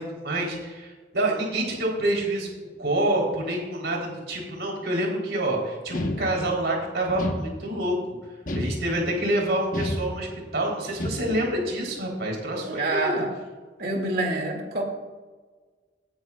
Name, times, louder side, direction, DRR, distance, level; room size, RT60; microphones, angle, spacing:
voice 1, 0.0-8.0 8.5-10.3 10.5-13.2, right 1 dB, 75° right, -1 dB, 3.7 m, -27 dB
sound 1, 5.9-6.7 7.2-7.9 8.5-9.2 9.7-10.5 11.0-11.6, left 1 dB, 50° left, 1.2 m, -31 dB
voice 2, 12.6-13.3 13.8-14.8, right 2 dB, 55° right, 1 dB, 2.4 m, -27 dB
18.0 x 10.0 x 2.4 m, 1.3 s
head